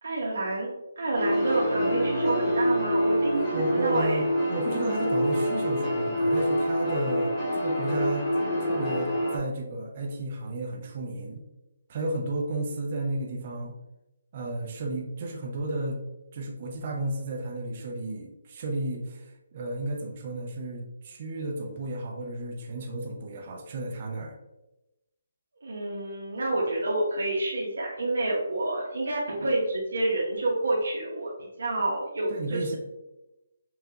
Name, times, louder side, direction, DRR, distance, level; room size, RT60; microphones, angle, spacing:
voice 1, 0.0-0.7 1.0-4.2 25.6-32.8, right 2 dB, 80° right, -5 dB, 1.0 m, -28 dB
sound 1, 1.1-9.4, equal, 20° left, 1.1 m, -26 dB
voice 2, 3.5-8.3 8.6-11.4 11.9-13.7 14.3-16.0 16.3-24.4 32.3-32.8, right 2 dB, 35° right, 1 dB, 0.6 m, -33 dB
5.6 x 2.4 x 2.8 m, 0.97 s
hypercardioid pair, 165°, 0 cm